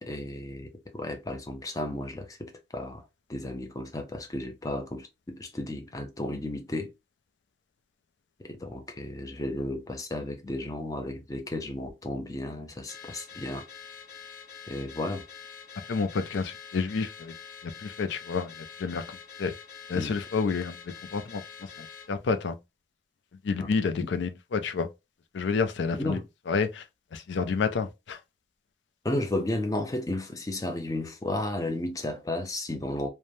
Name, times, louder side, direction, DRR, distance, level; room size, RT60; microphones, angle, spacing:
voice 1, 0.0-6.9 8.4-13.7 14.7-15.2 19.9-20.2 23.6-23.7 25.9-26.2 29.0-33.1, left 1 dB, 20° left, 0.4 m, -33 dB
Car / Alarm, 12.9-22.1, left 6 dB, 50° left, 0.9 m, -46 dB
voice 2, 15.9-17.3 17.6-19.5 19.9-20.8 21.1-22.6 23.4-24.9 25.3-26.2 26.5-26.8 27.1-28.2, left 5 dB, 75° left, 0.4 m, -29 dB
3.1 x 2.1 x 2.6 m
head